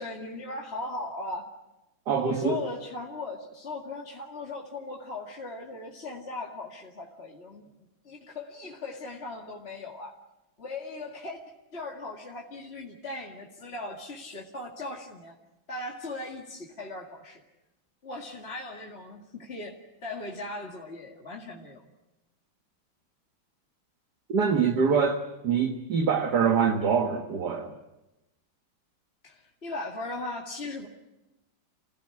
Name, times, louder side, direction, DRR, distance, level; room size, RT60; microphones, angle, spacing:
voice 1, 0.0-1.4 2.1-10.1 10.6-11.4 11.7-15.4 15.7-17.4 18.0-19.7 20.0-21.8 29.2-30.9, left 2 dB, 30° left, -1 dB, 2.4 m, -38 dB
voice 2, 2.1-2.6 24.3-27.7, right 6 dB, 55° right, 5 dB, 1.9 m, -25 dB
28.0 x 17.0 x 9.8 m, 0.99 s
omnidirectional pair, 2.2 m